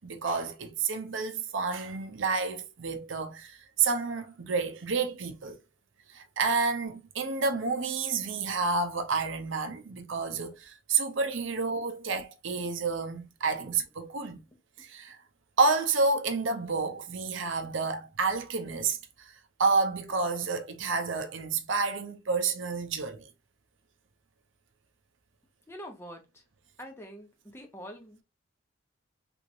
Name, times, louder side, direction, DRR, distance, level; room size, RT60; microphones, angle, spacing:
voice 1, 0.0-5.6 6.1-14.4 14.8-15.2 15.6-19.3 19.6-23.3, right 4 dB, 65° right, 0.6 m, -29 dB
voice 2, 14.5-14.9 25.7-26.4 26.8-28.2, equal, 10° left, 0.8 m, -46 dB
3.4 x 3.1 x 2.6 m
head